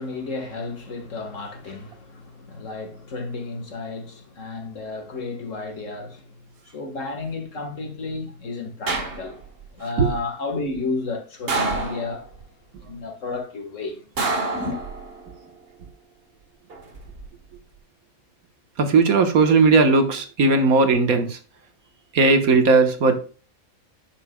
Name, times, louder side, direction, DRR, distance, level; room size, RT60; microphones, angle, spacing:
voice 1, 0.0-6.2 6.7-9.4 9.7-12.2 12.9-14.0 14.5-14.8, left 3 dB, 60° left, 2.0 m, -32 dB
sound 1, 8.9-9.6 11.5-12.4 14.2-15.3 16.7-17.2, right 3 dB, 45° right, 1.5 m, -27 dB
voice 2, 18.8-21.4 22.1-23.2, right 3 dB, 85° right, 1.7 m, -17 dB
9.4 x 7.1 x 2.2 m
omnidirectional pair, 1.5 m